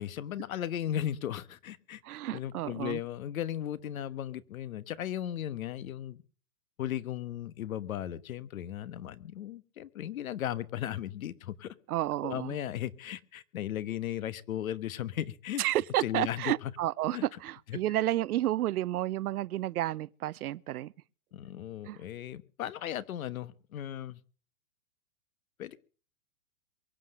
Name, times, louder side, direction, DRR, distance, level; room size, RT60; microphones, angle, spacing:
voice 1, 0.0-2.0 2.3-6.2 6.8-11.7 12.2-15.6 16.0-16.7 17.1-17.2 17.7-17.8 21.3-24.2 25.6-25.8, left 11 dB, 70° left, 1.3 m, -36 dB
voice 2, 2.0-3.0 11.9-12.6 15.6-20.9 21.9-22.0, right 14 dB, 80° right, 0.7 m, -31 dB
23.5 x 7.9 x 6.6 m
hypercardioid pair, 165°, 44 cm